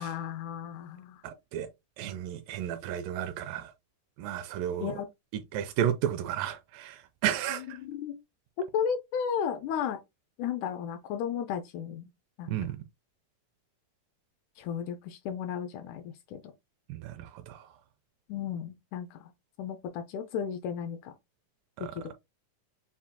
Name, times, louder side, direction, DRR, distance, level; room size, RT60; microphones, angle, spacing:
voice 1, 0.0-1.2 4.8-5.1 7.9-8.1 8.7-10.0 10.4-12.1 12.4-12.5 14.6-16.5 18.3-19.3 19.6-21.1 21.8-21.9, left 8 dB, 90° left, 1.7 m, -34 dB
voice 2, 1.2-1.7 2.0-3.7 4.2-5.0 5.3-7.8 12.5-12.8 16.9-17.8 21.8-22.0, right 10 dB, 80° right, 2.1 m, -33 dB
7.1 x 2.8 x 2.2 m
omnidirectional pair, 4.1 m